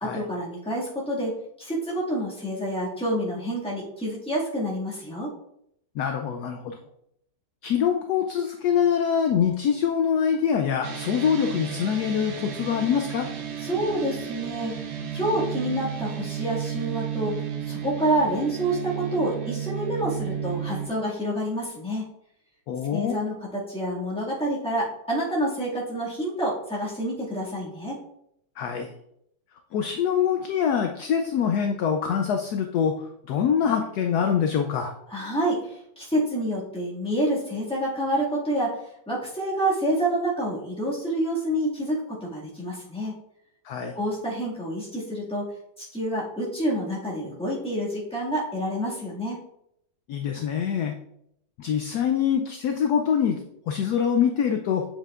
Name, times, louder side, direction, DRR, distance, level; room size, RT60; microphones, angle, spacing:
voice 1, 0.0-5.3 13.6-14.8 15.1-22.1 22.9-28.0 35.1-38.7 39.1-43.2 43.9-45.5 45.8-49.4, right 1 dB, 5° left, -6 dB, 1.8 m, -28 dB
voice 2, 6.0-6.8 7.6-13.3 22.7-23.2 28.6-28.9 29.7-33.0 33.3-34.9 43.6-43.9 50.1-50.9 51.6-53.4 53.7-54.9, left 7 dB, 70° left, 4 dB, 1.0 m, -24 dB
sound 1, 10.8-20.9, right 8 dB, 90° right, 1.6 m, -33 dB
7.2 x 5.4 x 2.4 m, 0.75 s
omnidirectional pair, 2.0 m